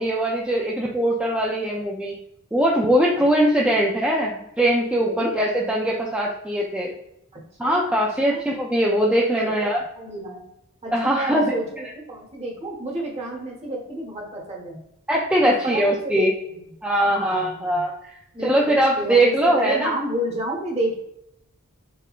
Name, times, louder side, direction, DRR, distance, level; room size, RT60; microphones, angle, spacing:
voice 1, 0.0-2.1 2.5-6.9 7.6-9.8 10.9-11.5 15.1-16.3 16.8-18.1 18.4-19.9, right 1 dB, 5° right, -3 dB, 0.3 m, -21 dB
voice 2, 5.0-5.3 7.3-8.4 9.4-9.6 10.0-10.4 10.8-11.6 11.9-14.8 15.4-16.6 17.1-17.8 18.3-20.9, right 1 dB, 30° right, -1 dB, 1.0 m, -30 dB
3.6 x 3.4 x 2.3 m, 0.80 s
head